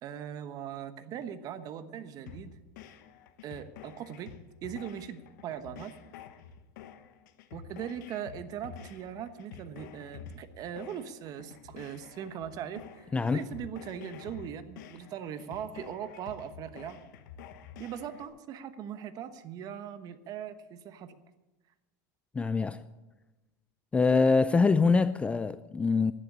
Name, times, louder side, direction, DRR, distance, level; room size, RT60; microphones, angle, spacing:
voice 1, 0.0-2.5 3.4-6.0 7.5-17.0 17.8-21.2, right 9 dB, 40° right, 1.1 m, -40 dB
sound 1, 2.3-18.3, left 7 dB, 75° left, 1.2 m, -49 dB
voice 2, 22.3-22.8 23.9-26.1, left 4 dB, 10° left, 0.3 m, -24 dB
11.5 x 10.0 x 8.6 m
supercardioid pair, 135°, 10 cm